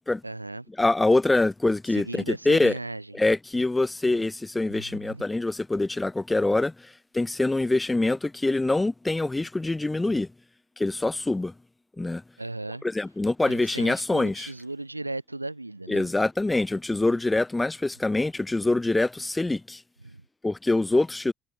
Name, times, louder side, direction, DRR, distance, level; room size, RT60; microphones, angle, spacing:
voice 1, 0.2-0.7 1.9-3.1 4.7-5.2 12.4-12.8 13.5-16.1 20.0-20.2, right 2 dB, 90° right, 1.1 m, -36 dB
voice 2, 0.8-2.8 3.1-10.3 10.8-11.5 12.0-12.2 12.8-14.5 15.9-19.8 20.4-21.3, left 2 dB, 15° left, 1.9 m, -25 dB
figure-of-eight pair, 45°, 0 cm